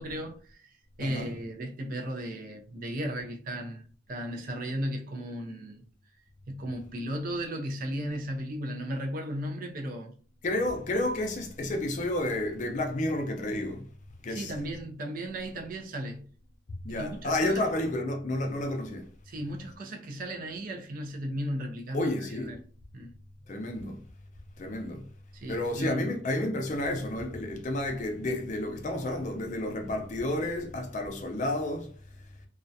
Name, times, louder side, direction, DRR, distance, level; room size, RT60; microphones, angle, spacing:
voice 1, 0.0-5.8 6.5-10.2 14.3-16.3 16.9-17.6 19.3-22.6 22.9-23.1 25.3-26.1, equal, 50° right, 0.4 m, -35 dB
voice 2, 1.0-1.3 10.4-13.8 14.2-14.5 16.8-19.1 21.9-22.5 23.5-24.0 24.6-25.1 25.5-31.9, left 1 dB, 40° left, 0.4 m, -31 dB
2.3 x 2.1 x 2.6 m
head